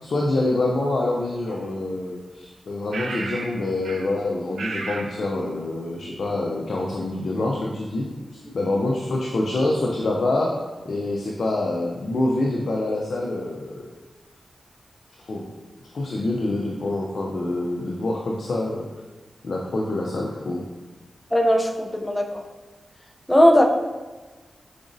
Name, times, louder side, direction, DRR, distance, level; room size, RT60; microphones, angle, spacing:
voice 1, 0.0-8.1 8.3-10.5 10.9-13.9 15.3-15.5 15.9-18.8 19.4-20.6, left 2 dB, 70° left, -1 dB, 0.5 m, -26 dB
sound 1, 1.5-1.6 2.9-3.6 3.8-4.1 4.6-5.1, right 3 dB, 85° right, 0.3 m, -32 dB
voice 2, 21.3-22.4 23.3-23.6, equal, 10° left, 3 dB, 0.5 m, -18 dB
4.9 x 3.9 x 2.6 m, 1.3 s
cardioid pair, 60°, 0 cm